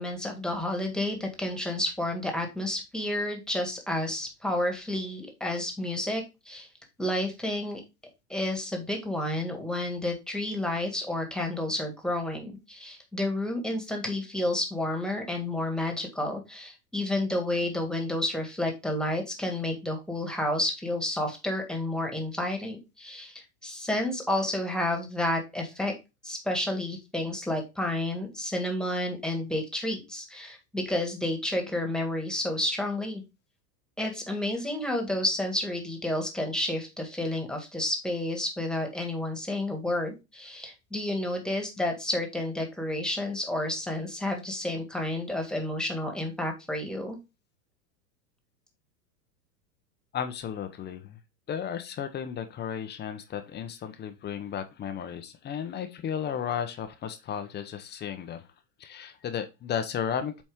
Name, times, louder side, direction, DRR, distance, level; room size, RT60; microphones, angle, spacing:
voice 1, 0.0-6.7 7.0-7.8 8.3-25.9 26.2-33.2 34.0-47.2, left 1 dB, ahead, 1.7 m, -30 dB
voice 2, 50.1-51.2 51.5-58.5 58.8-60.4, left 8 dB, 20° left, 0.8 m, -34 dB
7.6 x 4.2 x 3.6 m
hypercardioid pair, 125°, 48 cm